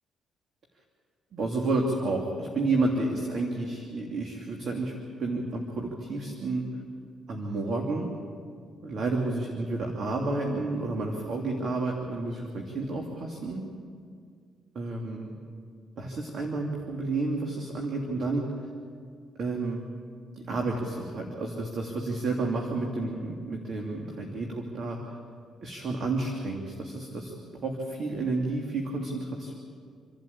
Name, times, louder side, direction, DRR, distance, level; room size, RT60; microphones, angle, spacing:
voice 1, 1.3-6.6 7.3-8.1 8.8-13.6 14.7-15.3 16.0-18.5 19.4-19.8 20.4-25.0 25.6-27.3 27.6-29.5, right 2 dB, 55° right, 0 dB, 2.8 m, -30 dB
28.5 x 12.0 x 8.6 m, 2.1 s
cardioid pair, 90°, 0 cm